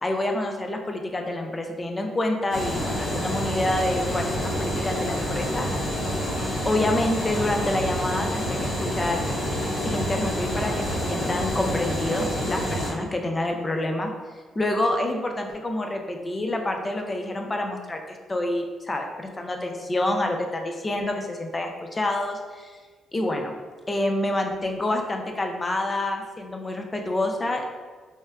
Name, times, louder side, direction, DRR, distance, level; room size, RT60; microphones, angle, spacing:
voice 1, 0.0-5.7 6.7-9.2 9.8-14.1 14.6-22.8 23.1-23.5 23.9-27.7, left 1 dB, 25° left, 3 dB, 0.4 m, -27 dB
sound 1, 2.5-12.9, equal, 80° left, 0.9 m, -28 dB
4.2 x 2.1 x 2.3 m, 1.4 s
cardioid pair, 90°, 0 cm